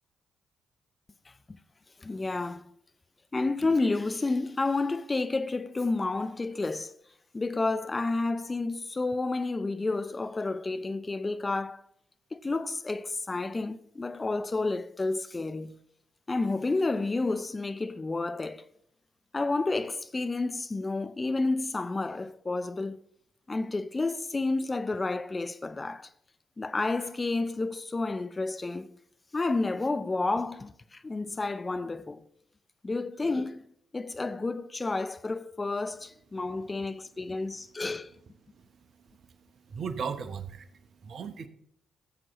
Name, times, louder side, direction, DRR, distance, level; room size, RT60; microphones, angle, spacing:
voice 1, 1.3-1.6 2.0-2.7 3.3-7.0 7.3-11.8 12.3-15.8 16.3-18.7 19.3-23.0 23.5-26.1 26.6-28.9 29.3-32.2 32.8-33.6 33.9-38.1, left 3 dB, 30° left, 0.6 m, -30 dB
voice 2, 38.5-41.5, right 6 dB, 60° right, 0.9 m, -39 dB
16.0 x 7.7 x 3.0 m
hypercardioid pair, 40°, 0 cm